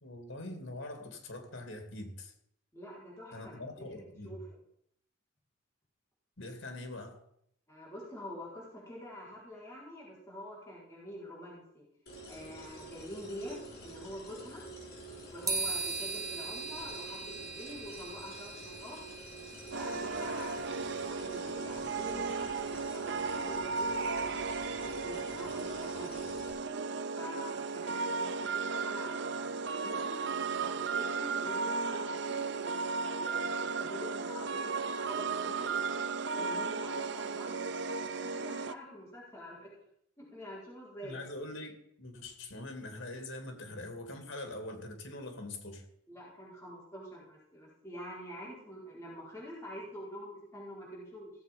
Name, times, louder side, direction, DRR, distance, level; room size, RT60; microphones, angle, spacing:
voice 1, 0.0-2.3 3.3-4.3 6.4-7.2 41.0-45.9, left 2 dB, 80° left, 6 dB, 2.8 m, -43 dB
voice 2, 2.7-4.5 7.7-11.8 12.3-14.6 15.2-19.0 19.7-20.6 21.0-26.2 27.1-30.1 30.6-32.5 33.1-35.8 36.3-37.6 38.2-39.7 40.2-41.2 46.1-51.3, equal, 15° left, -7 dB, 4.8 m, -46 dB
sound 1, 12.1-26.5, right 1 dB, 55° left, 6.3 m, -48 dB
sound 2, 15.5-20.8, right 3 dB, 20° right, 1.6 m, -39 dB
sound 3, 19.7-38.7, right 4 dB, 60° right, 0.6 m, -35 dB
16.5 x 7.9 x 5.4 m, 0.72 s
head